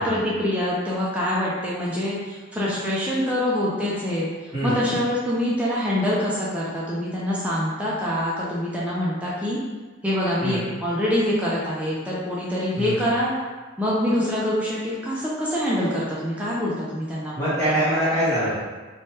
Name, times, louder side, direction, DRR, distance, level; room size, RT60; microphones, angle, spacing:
voice 1, 0.0-9.6 10.0-13.3 13.8-17.5, left 1 dB, 5° right, -7 dB, 0.4 m, -25 dB
voice 2, 4.5-4.9 10.4-10.7 12.8-13.0 17.4-18.5, equal, 10° left, -14 dB, 0.8 m, -23 dB
3.1 x 2.2 x 2.8 m, 1.3 s
head